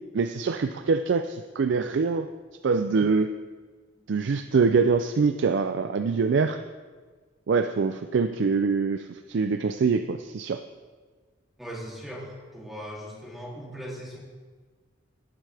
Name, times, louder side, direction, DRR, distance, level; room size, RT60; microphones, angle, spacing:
voice 1, 0.1-2.3 2.6-3.3 4.1-6.6 7.5-10.6, right 4 dB, 65° right, 9 dB, 0.4 m, -24 dB
voice 2, 11.6-14.2, equal, ahead, -6 dB, 2.8 m, -39 dB
18.5 x 9.1 x 3.4 m, 1.4 s
head